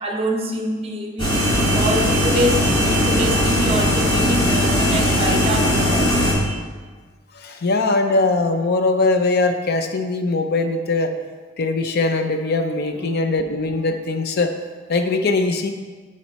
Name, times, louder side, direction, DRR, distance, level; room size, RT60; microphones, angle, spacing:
voice 1, 0.0-6.4 12.9-13.2, right 1 dB, 30° right, 2 dB, 0.9 m, -26 dB
Fridge Tone, 1.2-6.3, equal, 25° left, 1.9 m, -18 dB
voice 2, 7.3-11.1 11.6-14.5 14.9-15.7, left 3 dB, 50° left, 7 dB, 0.5 m, -21 dB
9.4 x 4.3 x 4.1 m, 1.4 s
head